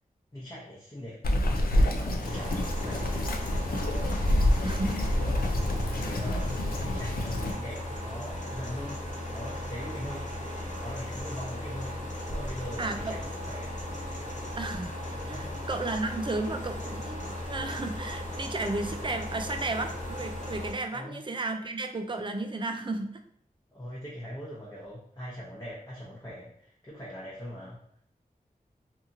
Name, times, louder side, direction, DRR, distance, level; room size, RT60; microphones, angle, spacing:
voice 1, 0.3-1.3 1.7-3.1 4.3-5.6 5.9-10.4 10.8-13.8 15.3-15.6 20.9-21.2 23.7-27.8, equal, 20° left, -6 dB, 0.8 m, -42 dB
Bird vocalization bird call bird song, 1.2-7.5, left 1 dB, 80° left, 0.4 m, -27 dB
sound 1, 2.2-20.7, left 1 dB, 55° left, 0.8 m, -37 dB
voice 2, 4.6-5.1 12.8-13.1 14.6-23.2, right 2 dB, 35° right, 6 dB, 0.4 m, -33 dB
2.8 x 2.6 x 2.5 m, 0.65 s
wide cardioid pair, 65°, 15 cm